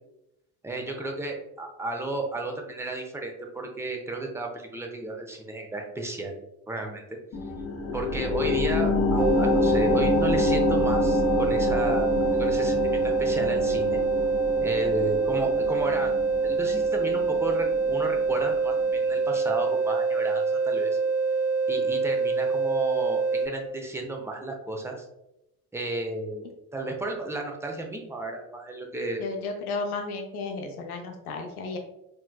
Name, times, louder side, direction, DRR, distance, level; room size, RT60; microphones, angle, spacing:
voice 1, 0.6-6.3 6.7-7.0 7.9-12.1 12.4-14.0 14.6-16.1 16.4-21.0 21.7-25.0 25.7-29.2, right 2 dB, 5° right, 2 dB, 0.6 m, -33 dB
sound 1, 7.3-18.4 18.8-18.9, left 3 dB, 30° left, 0.8 m, -27 dB
sound 2, 9.2-23.5, right 4 dB, 50° right, 0.8 m, -25 dB
voice 2, 29.2-31.8, left 3 dB, 85° left, 3 dB, 0.5 m, -33 dB
4.4 x 2.2 x 2.3 m, 0.86 s
figure-of-eight pair, 50°, 44 cm